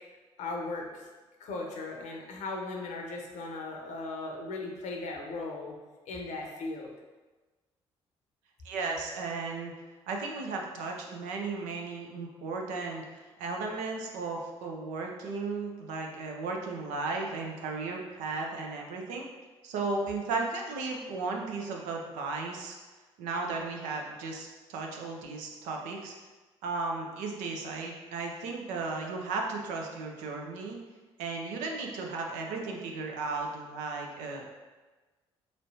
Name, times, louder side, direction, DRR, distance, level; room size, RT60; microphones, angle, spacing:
voice 1, 0.4-1.1 1.4-5.7 6.1-6.9, left 3 dB, 65° left, 1 dB, 0.7 m, -37 dB
voice 2, 8.6-9.7 10.1-19.3 19.6-22.7 23.2-26.2 26.6-30.8 31.2-34.6, right 3 dB, 75° right, 1 dB, 0.6 m, -35 dB
4.2 x 3.1 x 2.7 m, 1.2 s
hypercardioid pair, 50°, 13 cm